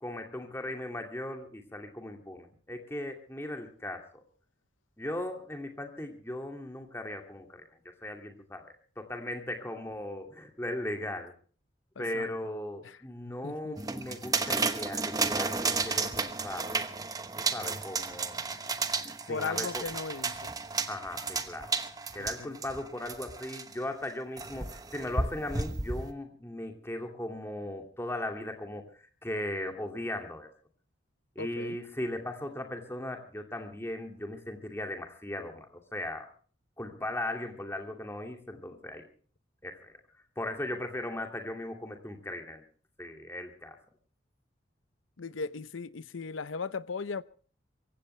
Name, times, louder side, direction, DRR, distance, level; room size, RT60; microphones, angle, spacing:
voice 1, 0.0-4.2 5.0-11.3 12.0-16.8 17.4-18.5 19.2-19.9 20.9-21.7 22.1-30.5 31.4-36.3 36.8-39.1 39.6-40.0 40.4-42.6 43.0-43.8, left 1 dB, 15° left, 2.4 m, -38 dB
voice 2, 12.0-12.3 12.8-13.0 13.4-13.8 19.3-20.5 22.2-22.6 31.4-31.8 45.2-47.2, left 4 dB, 85° left, 0.7 m, -37 dB
sound 1, 13.8-23.7 24.4-26.1, right 4 dB, 20° right, 1.0 m, -33 dB
24.5 x 15.5 x 3.3 m
head